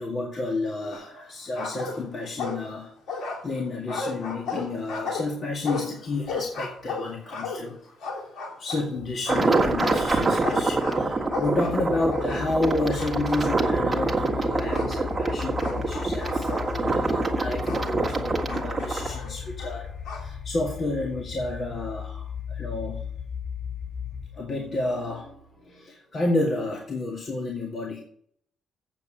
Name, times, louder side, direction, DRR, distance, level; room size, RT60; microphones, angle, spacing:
voice 1, 0.0-7.9 8.6-23.0 24.3-28.0, left 2 dB, 45° left, -1 dB, 2.0 m, -31 dB
sound 1, 0.9-1.3 1.5-2.8 3.1-8.9 9.2-12.6 12.9-13.8 14.7-14.9 15.6-17.9 18.5-20.3, left 4 dB, 90° left, 3.0 m, -35 dB
sound 2, 9.3-19.1, right 3 dB, 15° right, 1.6 m, -26 dB
sound 3, 9.6-24.5, left 6 dB, 10° left, 0.7 m, -36 dB
8.2 x 7.0 x 7.7 m, 0.64 s
cardioid pair, 125°, 0 cm